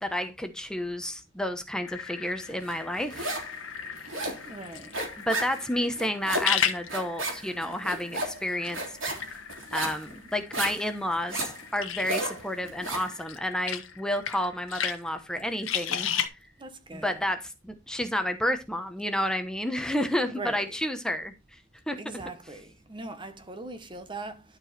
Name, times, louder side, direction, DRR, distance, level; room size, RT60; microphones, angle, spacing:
voice 1, 0.0-3.3 5.2-9.4 9.7-16.1 16.9-21.6 21.9-22.0, left 1 dB, 5° left, 1.0 m, -30 dB
sound 1, 1.8-16.3, left 8 dB, 80° left, 1.4 m, -36 dB
sound 2, 2.7-3.6 3.8-13.1, right 2 dB, 70° right, 3.4 m, -34 dB
voice 2, 4.4-5.0 16.6-17.2 20.3-20.8 22.0-24.4, right 2 dB, 25° right, 1.1 m, -40 dB
12.0 x 4.8 x 4.4 m
head